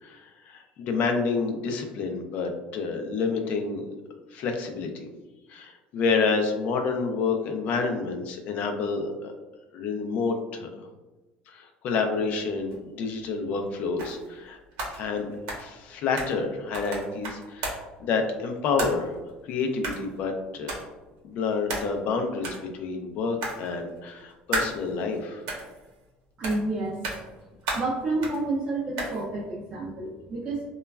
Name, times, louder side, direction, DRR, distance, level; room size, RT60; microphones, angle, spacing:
voice 1, 0.0-3.8 4.3-5.1 5.5-9.3 9.7-10.9 11.5-14.6 15.0-15.3 15.6-19.2 19.5-20.8 21.2-25.4, left 4 dB, 50° left, 4 dB, 0.4 m, -29 dB
sound 1, 12.7-12.8 14.0-14.4 14.7-16.5 16.7-18.0 18.8-19.3 19.8-20.2 20.7-20.9 21.7-22.1 22.4-22.7 23.4-24.0 24.5-25.2 25.5-26.1 26.4-26.7 27.0-27.4 27.7-28.4 29.0-29.2, right 2 dB, 85° right, 0.8 m, -34 dB
voice 2, 26.4-27.2 27.6-30.6, right 2 dB, 30° right, -4 dB, 0.4 m, -30 dB
3.0 x 2.2 x 2.2 m, 1.1 s
cardioid pair, 150°, 3 cm